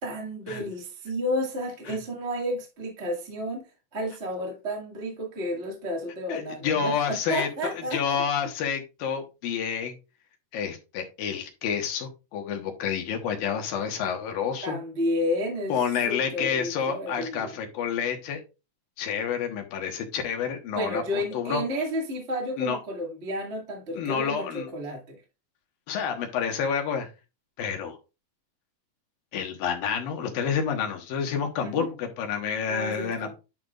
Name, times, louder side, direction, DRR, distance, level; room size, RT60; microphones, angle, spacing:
voice 1, 0.0-3.6 3.9-8.2 14.6-17.5 20.7-25.2 31.6-31.9 32.7-33.3, equal, 25° right, 1.7 m, -31 dB
voice 2, 6.3-10.0 10.5-14.8 15.7-18.4 19.0-21.6 22.6-22.8 23.9-24.7 25.9-27.1 27.6-28.0 29.3-33.3, left 7 dB, 75° left, 3.0 m, -29 dB
10.5 x 5.9 x 2.5 m
omnidirectional pair, 4.3 m